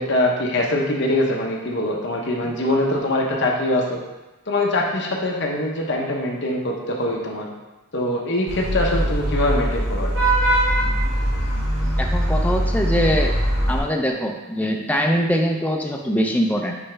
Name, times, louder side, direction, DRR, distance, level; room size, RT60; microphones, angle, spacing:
voice 1, 0.0-4.0 4.5-7.5 7.9-10.1, left 1 dB, 55° left, -1 dB, 0.9 m, -23 dB
Vehicle horn car horn honking / Traffic noise roadway noise, 8.5-13.8, right 1 dB, 55° right, 1.7 m, -21 dB
voice 2, 12.0-13.3 13.7-16.8, equal, 5° left, 1 dB, 0.5 m, -22 dB
9.6 x 3.3 x 3.3 m, 1.1 s
head